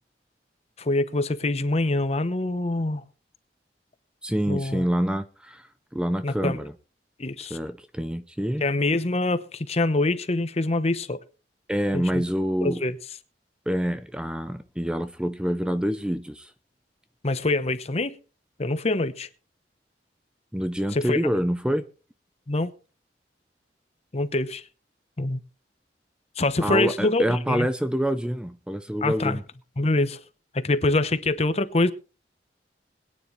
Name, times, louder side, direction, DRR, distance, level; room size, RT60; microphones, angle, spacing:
voice 1, 0.8-3.0 4.5-4.9 6.2-6.6 7.2-7.6 8.6-11.2 11.9-12.2 12.6-13.0 17.2-18.2 18.6-19.3 20.9-21.2 22.5-22.7 24.1-24.6 25.2-25.4 26.4-27.7 29.0-29.4 29.8-30.2 30.5-31.9, left 2 dB, 35° left, 0.9 m, -25 dB
voice 2, 4.2-6.7 7.5-8.6 11.7-12.8 13.7-16.5 20.5-21.8 26.6-29.4, equal, 5° right, 0.6 m, -26 dB
21.5 x 9.8 x 3.2 m
head